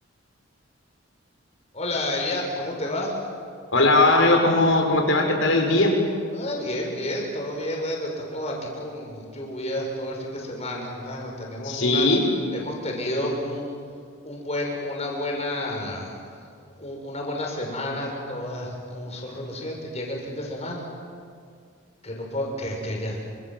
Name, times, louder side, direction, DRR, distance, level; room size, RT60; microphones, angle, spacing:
voice 1, 1.7-3.1 6.3-12.1 12.5-13.7 14.2-16.2 16.6-20.9 22.0-23.2, left 1 dB, 30° left, 0 dB, 6.6 m, -30 dB
voice 2, 3.7-5.9 11.6-12.2, left 2 dB, 70° left, 2 dB, 5.6 m, -19 dB
28.5 x 26.5 x 7.8 m, 2.3 s
head